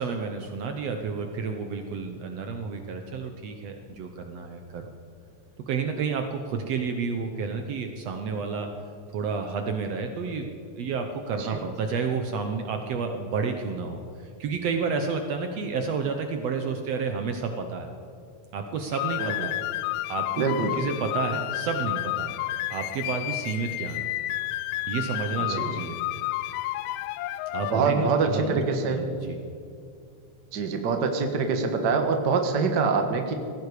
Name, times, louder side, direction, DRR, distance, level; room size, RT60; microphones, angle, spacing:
voice 1, 0.0-4.9 5.7-8.7 9.1-10.5 10.8-17.9 18.5-19.6 20.1-20.4 20.8-22.4 22.7-24.1 24.9-26.0 27.5-28.6 28.9-29.4, right 5 dB, 65° right, 5 dB, 1.9 m, -30 dB
sound 1, 18.9-27.8, left 17 dB, 80° left, 1.7 m, -31 dB
voice 2, 20.4-20.8 25.5-25.7 27.7-29.0 30.5-33.3, right 4 dB, 45° right, 5 dB, 1.7 m, -25 dB
19.0 x 15.5 x 4.9 m, 2.5 s
omnidirectional pair, 3.4 m